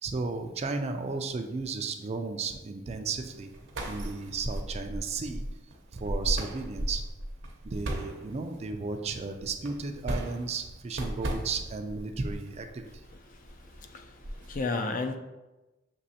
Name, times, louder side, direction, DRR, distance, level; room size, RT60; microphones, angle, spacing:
voice 1, 0.0-3.5 3.9-5.4 5.9-7.0 7.6-12.9, right 4 dB, 35° right, 6 dB, 0.3 m, -34 dB
sound 1, 3.3-14.6, right 1 dB, 65° right, 0.7 m, -37 dB
voice 2, 13.3-15.2, left 3 dB, 45° left, 6 dB, 0.4 m, -34 dB
6.1 x 3.0 x 2.8 m, 1.1 s
head